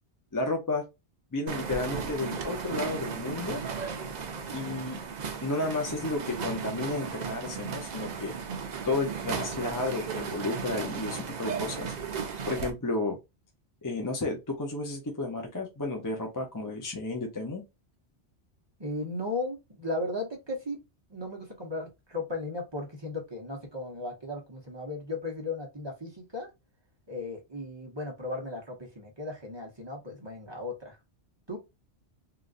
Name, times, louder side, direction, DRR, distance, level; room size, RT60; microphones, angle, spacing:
voice 1, 0.3-0.8 1.3-3.6 4.5-5.0 5.4-8.3 8.9-11.9 12.5-13.2 13.8-17.6, left 2 dB, 25° left, 0.5 m, -32 dB
sound 1, 1.5-12.7, right 6 dB, 50° right, 0.6 m, -35 dB
voice 2, 18.8-20.8 21.1-26.5 27.1-31.0 31.5-31.6, left 2 dB, 25° right, 0.9 m, -36 dB
3.7 x 2.4 x 2.4 m
omnidirectional pair, 1.1 m